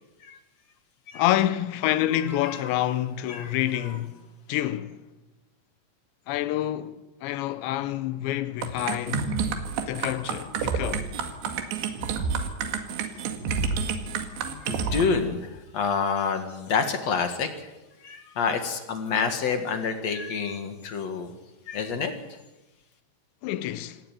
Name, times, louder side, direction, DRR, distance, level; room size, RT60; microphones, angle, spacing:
voice 1, 1.1-4.2 4.5-5.0 6.3-9.3 9.9-11.1 23.4-24.0, left 13 dB, 85° left, 3.3 m, -27 dB
voice 2, 2.4-2.8 3.3-3.5 3.8-4.0 14.6-17.7 18.0-21.3 21.7-22.1, left 5 dB, 50° left, 2.4 m, -28 dB
sound 1, 8.6-15.0, right 5 dB, 80° right, 4.2 m, -29 dB
27.0 x 15.5 x 9.3 m
omnidirectional pair, 5.1 m